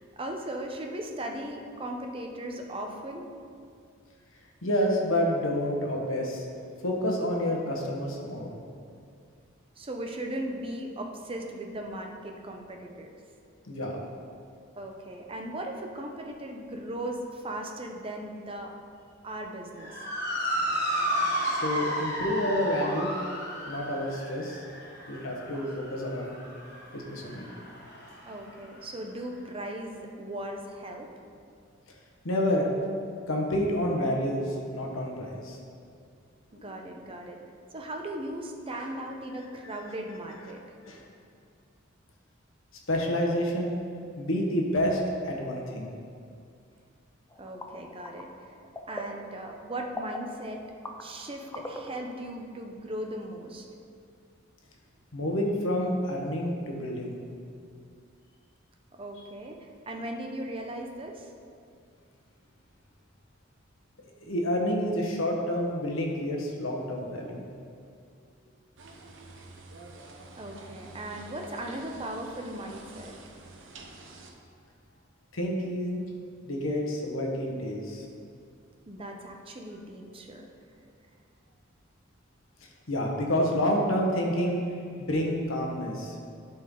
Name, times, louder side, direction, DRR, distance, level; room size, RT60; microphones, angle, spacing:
voice 1, 0.0-3.3 9.8-13.1 14.8-18.7 19.2-20.0 25.5-25.8 28.3-31.1 36.6-37.4 37.7-40.6 47.4-48.3 48.9-50.6 51.0-53.7 58.9-61.3 70.4-73.2 78.9-80.5, right 1 dB, 25° right, 2 dB, 0.7 m, -38 dB
voice 2, 4.6-6.4 6.8-8.5 13.7-14.0 21.4-23.1 23.7-24.6 25.1-26.4 26.9-27.4 32.2-32.7 33.3-35.6 38.7-38.9 40.8-41.0 42.9-43.7 44.2-45.9 55.1-57.2 64.2-67.4 75.3-76.0 76.4-78.1 82.9-84.7 85.0-86.1, equal, 85° left, 0 dB, 1.2 m, -29 dB
Motor vehicle (road) / Siren, 19.8-28.4, equal, 55° left, 1.5 m, -32 dB
sound 1, 47.3-52.3, equal, 15° left, 0.4 m, -42 dB
sound 2, 68.8-74.3, right 2 dB, 65° right, 0.9 m, -48 dB
12.0 x 4.4 x 3.8 m, 2.3 s
head